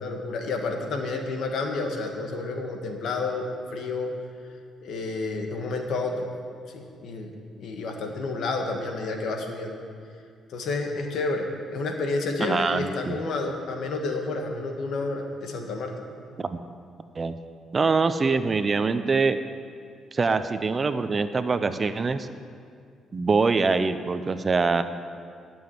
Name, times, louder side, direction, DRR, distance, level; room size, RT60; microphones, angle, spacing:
voice 1, 0.0-3.4 3.7-4.1 4.8-6.3 6.7-9.8 10.5-15.9, left 3 dB, 70° left, 3 dB, 1.8 m, -30 dB
voice 2, 12.4-13.2 16.4-16.6 17.1-17.3 17.7-19.4 20.1-22.3 23.1-24.8, right 4 dB, 35° right, 11 dB, 0.7 m, -24 dB
12.5 x 7.2 x 9.9 m, 2.3 s
cardioid pair, 90°, 0 cm